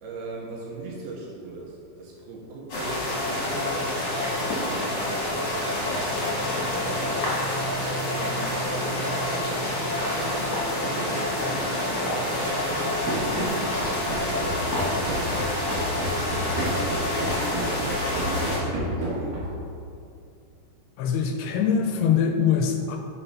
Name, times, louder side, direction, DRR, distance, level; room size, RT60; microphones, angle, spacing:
voice 1, 0.0-7.2 7.5-7.6 8.0-15.3 15.8-16.3 17.6-19.4, right 2 dB, 75° right, -3 dB, 2.6 m, -39 dB
sound 1, 2.7-18.6, left 1 dB, 50° left, 1.3 m, -27 dB
Run, 13.1-19.7, right 1 dB, 60° right, 2.8 m, -30 dB
voice 2, 21.0-23.0, left 7 dB, 85° left, 4 dB, 2.3 m, -23 dB
7.1 x 4.1 x 5.6 m, 2.5 s
omnidirectional pair, 4.8 m